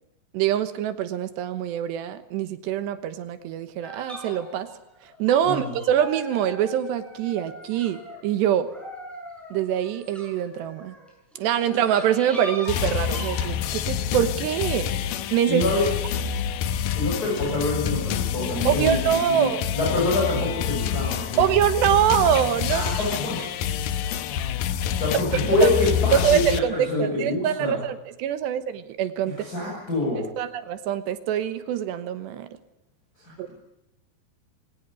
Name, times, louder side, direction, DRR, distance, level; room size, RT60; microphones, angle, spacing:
voice 1, 0.3-4.7 5.2-8.7 9.5-10.9 11.4-14.9 15.3-15.6 18.6-19.6 21.4-23.1 25.6-25.7 26.1-29.3 30.4-32.5 33.4-33.5, right 10 dB, 75° right, 11 dB, 3.1 m, -24 dB
sound 1, 3.8-8.3 8.6-13.4, equal, ahead, 7.0 m, -41 dB
sound 2, 12.7-26.6, left 9 dB, 90° left, 1.9 m, -27 dB
voice 2, 15.5-15.9 16.9-21.4 22.7-23.5 25.0-27.8 29.3-30.2 33.2-33.5, left 2 dB, 20° left, -3 dB, 6.9 m, -26 dB
22.0 x 18.0 x 9.6 m, 0.89 s
omnidirectional pair, 5.4 m